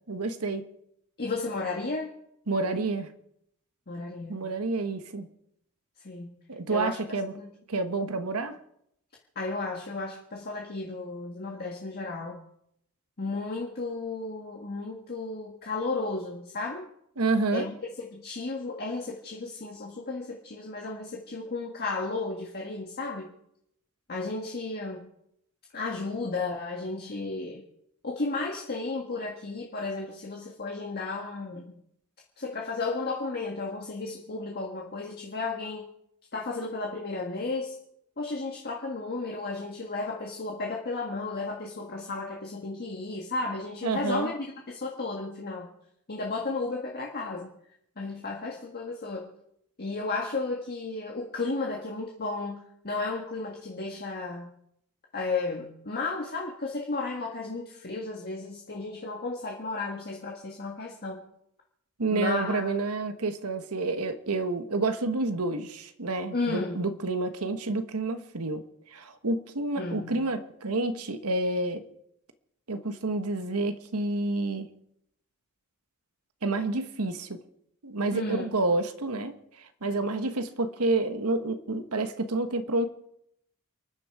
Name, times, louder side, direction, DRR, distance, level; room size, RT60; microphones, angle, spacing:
voice 1, 0.1-0.6 2.5-3.1 4.3-5.3 6.5-7.3 7.7-8.6 17.2-17.7 43.8-44.3 62.0-68.6 68.9-71.8 72.7-74.7 76.4-77.4 77.8-82.8, right 2 dB, 75° right, 9 dB, 1.2 m, -29 dB
voice 2, 1.2-2.1 3.9-4.4 6.0-6.3 6.7-7.0 7.3-7.5 9.3-12.4 13.2-16.9 17.5-23.3 24.1-25.1 25.7-27.6 28.0-31.7 32.4-35.9 36.3-37.7 38.2-45.7 46.1-47.5 48.0-49.3 49.8-54.5 55.1-61.2 62.1-62.7 66.3-66.8 69.8-70.2 78.1-78.6, left 3 dB, 45° left, 0 dB, 1.7 m, -33 dB
30.0 x 10.0 x 4.8 m, 0.76 s
head